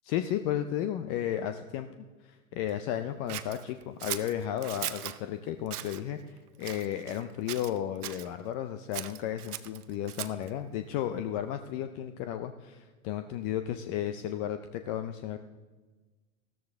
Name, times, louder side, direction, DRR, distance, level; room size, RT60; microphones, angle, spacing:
voice 1, 0.1-1.9 2.2-15.4, left 11 dB, 30° left, 9 dB, 0.4 m, -33 dB
Scissors, 3.3-5.2 5.7-6.0 6.6-7.2 7.5-8.3 8.9-10.5, right 12 dB, 75° right, 0.8 m, -38 dB
14.5 x 13.5 x 3.5 m, 1.3 s
hypercardioid pair, 110°, 46 cm